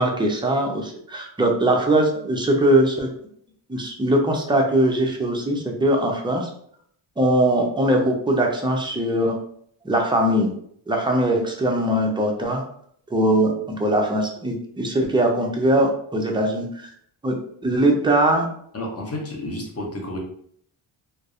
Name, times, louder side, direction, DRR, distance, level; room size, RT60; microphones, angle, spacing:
voice 1, 0.0-3.1 3.7-6.5 7.2-9.4 9.8-10.5 10.9-12.6 13.1-16.9 17.2-17.3 17.6-18.5, right 1 dB, 10° right, 1 dB, 0.4 m, -21 dB
voice 2, 18.7-20.2, left 1 dB, 30° left, 0 dB, 0.7 m, -31 dB
2.5 x 2.0 x 2.4 m, 0.66 s
cardioid pair, 80°, 47 cm